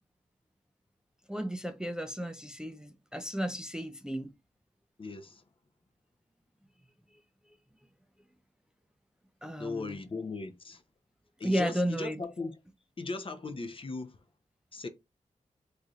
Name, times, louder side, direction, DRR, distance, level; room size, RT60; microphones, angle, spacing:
voice 1, 1.3-4.3 9.4-10.0 11.4-12.2, equal, 5° right, 0.4 m, -33 dB
voice 2, 5.0-5.4 9.6-10.8 11.4-12.6 13.0-14.2 14.7-14.9, left 3 dB, 40° left, 0.6 m, -38 dB
3.1 x 2.7 x 2.4 m
cardioid pair, 45°, 14 cm